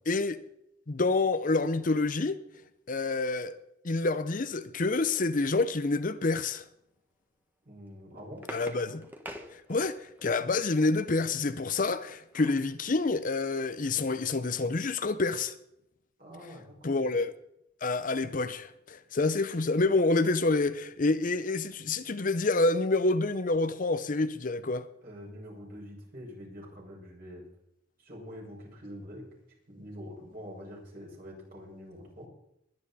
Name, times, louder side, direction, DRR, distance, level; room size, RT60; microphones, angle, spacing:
voice 1, 0.1-0.4 0.9-2.4 2.9-3.5 3.8-6.6 8.5-9.0 9.5-15.5 16.8-17.3 17.8-24.9, left 3 dB, 45° left, 0.7 m, -28 dB
voice 2, 7.6-8.4 16.2-17.0 25.0-27.4 28.0-29.3 29.7-32.3, equal, 50° right, 5.8 m, -45 dB
sound 1, 7.8-10.3 11.8-12.7 13.2-13.3 13.6-13.8, equal, 10° right, 1.5 m, -46 dB
21.5 x 9.8 x 4.2 m
head